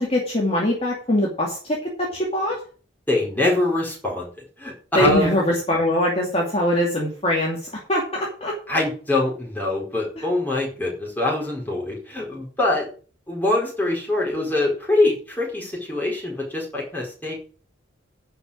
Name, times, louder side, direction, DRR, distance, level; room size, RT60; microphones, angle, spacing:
voice 1, 0.0-2.6 5.0-8.5 10.2-10.3, left 1 dB, 30° left, -2 dB, 2.5 m, -22 dB
voice 2, 3.1-4.3 4.6-5.4 8.7-12.9 13.3-17.3, left 2 dB, 10° left, -3 dB, 4.6 m, -24 dB
11.0 x 5.6 x 8.6 m, 0.41 s
head